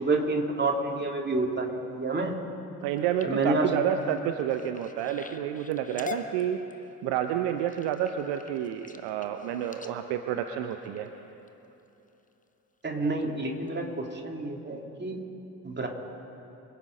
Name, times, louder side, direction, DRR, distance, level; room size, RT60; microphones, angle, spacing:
voice 1, 0.0-2.4 3.2-3.7 12.8-15.2 15.6-15.9, right 2 dB, 20° right, 1 dB, 2.7 m, -29 dB
sound 1, 2.8-11.5 12.1-12.4 12.8-13.2 13.7-13.8 14.1-14.2, left 4 dB, 15° left, 1.0 m, -45 dB
voice 2, 2.8-6.6 7.0-11.1, right 10 dB, 60° right, 7 dB, 0.9 m, -29 dB
26.0 x 8.9 x 5.3 m, 2.9 s
figure-of-eight pair, 45°, 47 cm